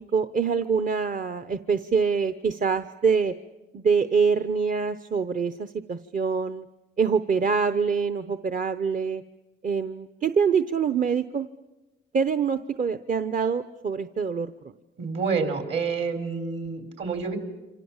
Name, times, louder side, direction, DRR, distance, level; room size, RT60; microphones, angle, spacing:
voice 1, 0.0-3.3 3.7-6.6 7.0-9.2 9.6-11.5 12.1-14.5, right 5 dB, 40° right, 11 dB, 0.8 m, -25 dB
voice 2, 15.0-17.4, right 5 dB, 65° right, 7 dB, 4.0 m, -28 dB
28.0 x 25.5 x 7.3 m, 1.1 s
cardioid pair, 90°, 20 cm